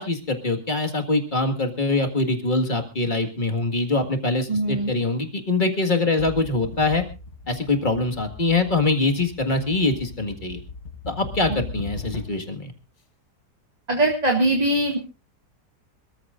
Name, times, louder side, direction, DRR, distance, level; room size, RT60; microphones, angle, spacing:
voice 1, 0.0-7.0 7.5-10.6 11.1-12.7, left 3 dB, 30° left, 5 dB, 1.9 m, -23 dB
voice 2, 4.5-4.9 13.9-15.0, right 2 dB, 25° right, 2 dB, 1.9 m, -21 dB
sound 1, 6.2-12.6, left 3 dB, 45° left, 1.8 m, -39 dB
26.0 x 14.0 x 2.5 m, 0.30 s
omnidirectional pair, 1.8 m